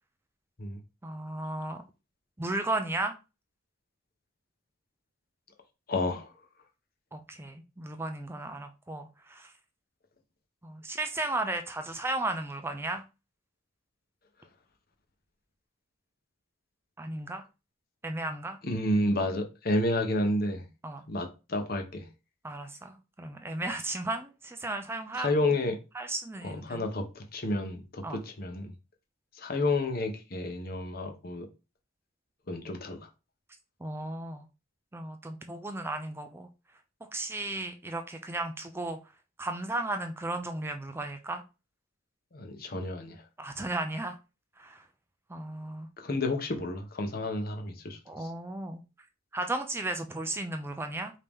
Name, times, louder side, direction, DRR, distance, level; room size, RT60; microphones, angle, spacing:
voice 1, 1.0-1.8 2.4-3.2 7.1-9.5 10.6-13.0 17.0-17.4 18.0-18.6 20.8-21.0 22.4-25.3 25.9-26.9 28.0-28.2 33.8-34.5 34.9-36.5 37.1-39.0 39.4-41.4 43.4-44.2 44.6-44.8 45.3-45.9 48.1-48.8 49.3-51.1, right 2 dB, 10° right, 0.4 m, -35 dB
voice 2, 5.9-6.3 18.6-20.7 21.1-22.1 25.1-25.8 26.4-28.7 29.4-31.5 32.5-33.1 42.3-43.2 46.0-48.3, left 1 dB, 50° left, 0.9 m, -30 dB
5.0 x 2.8 x 3.5 m
head